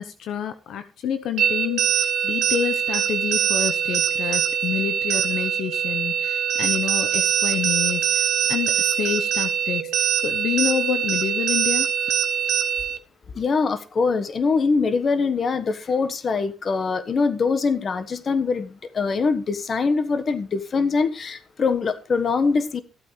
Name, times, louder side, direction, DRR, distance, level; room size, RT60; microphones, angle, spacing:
voice 1, 0.0-9.9 10.2-11.9, left 9 dB, 75° left, 0.9 m, -28 dB
sound 1, 1.4-13.0, right 9 dB, 75° right, 1.3 m, -23 dB
voice 2, 13.3-22.8, left 4 dB, 45° left, 1.3 m, -23 dB
14.5 x 8.6 x 3.2 m
cardioid pair, 90°, 0 cm